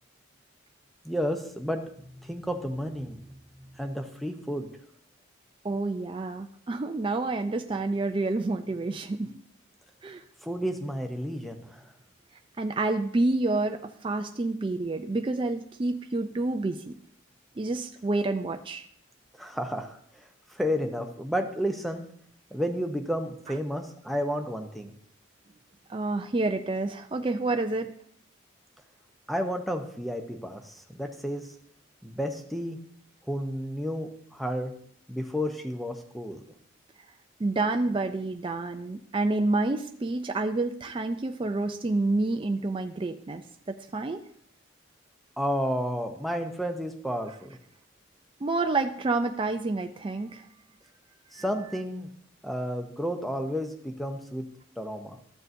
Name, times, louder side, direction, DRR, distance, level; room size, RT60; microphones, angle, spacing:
voice 1, 1.0-1.8 2.2-3.4 3.7-4.7 10.4-11.9 19.4-20.0 20.5-22.0 22.5-24.9 29.3-31.5 32.0-32.8 33.3-34.7 35.1-36.4 45.4-47.6 51.3-52.1 52.4-54.4 54.8-55.2, equal, ahead, 4 dB, 0.7 m, -31 dB
voice 2, 5.6-9.4 10.0-10.2 12.6-17.0 17.6-18.9 25.9-27.9 37.4-44.2 48.4-50.4 51.3-51.4, right 2 dB, 25° right, 5 dB, 0.4 m, -28 dB
13.5 x 6.7 x 2.6 m, 0.64 s
head